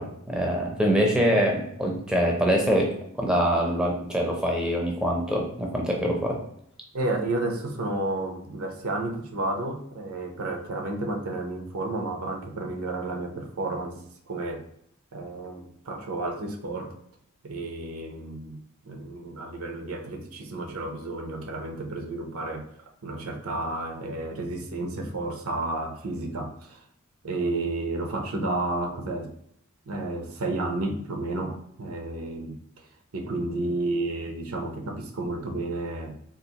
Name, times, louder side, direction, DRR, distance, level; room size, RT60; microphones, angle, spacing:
voice 1, 0.0-2.9 3.2-6.4, equal, 5° right, 0 dB, 0.5 m, -24 dB
voice 2, 6.9-14.0 14.3-14.6 15.1-17.0 17.4-22.7 23.0-26.8 27.2-29.3 29.9-32.9 33.1-36.1, right 2 dB, 75° right, 3 dB, 0.6 m, -31 dB
3.8 x 2.4 x 2.8 m, 0.70 s
head